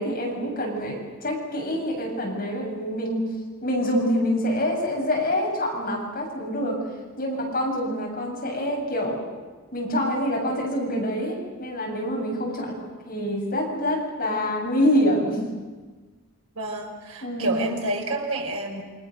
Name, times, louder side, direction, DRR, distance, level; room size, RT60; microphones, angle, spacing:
voice 1, 0.0-3.2 3.6-6.8 7.2-9.2 9.7-12.7 13.1-15.5 17.2-17.7, equal, 40° left, -1 dB, 7.5 m, -26 dB
voice 2, 16.6-18.8, right 1 dB, 75° right, 1 dB, 5.3 m, -29 dB
28.5 x 24.5 x 6.6 m, 1.3 s
head